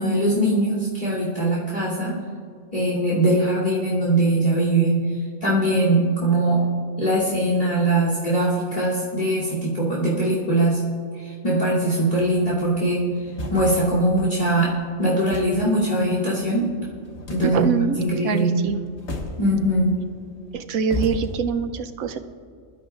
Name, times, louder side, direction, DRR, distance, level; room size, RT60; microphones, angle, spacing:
voice 1, 0.0-2.2 2.7-5.0 5.4-6.7 7.0-10.8 11.1-13.0 13.5-14.7 15.0-16.7 17.3-17.7 18.0-18.6 19.4-20.0, right 1 dB, 35° left, -5 dB, 3.0 m, -21 dB
sound 1, 12.2-21.3, left 2 dB, 55° left, 1.7 m, -37 dB
voice 2, 17.4-18.0 18.2-18.8 20.5-22.2, right 6 dB, 90° right, 8 dB, 1.1 m, -24 dB
23.0 x 12.5 x 2.4 m, 2.2 s
omnidirectional pair, 1.4 m